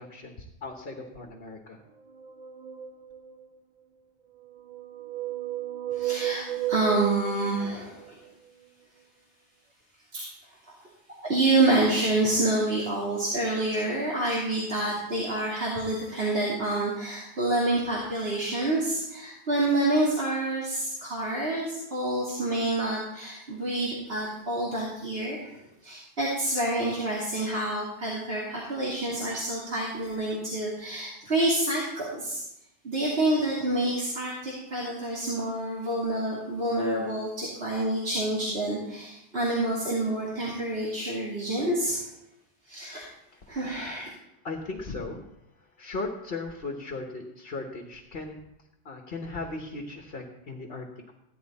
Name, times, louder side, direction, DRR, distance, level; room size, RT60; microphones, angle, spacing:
voice 1, 0.0-1.8 43.3-43.4 44.4-45.2 45.8-48.4 48.8-50.9, left 3 dB, 60° left, 2 dB, 1.5 m, -37 dB
sound 1, 2.0-3.6 4.4-8.3, right 14 dB, 45° right, 0.8 m, -34 dB
voice 2, 5.9-8.2 10.1-10.3 10.7-10.8 11.2-32.4 32.8-42.0 42.6-43.1 43.5-44.1, right 2 dB, 60° right, -5 dB, 2.8 m, -28 dB
15.0 x 11.0 x 4.2 m, 0.84 s
omnidirectional pair, 1.1 m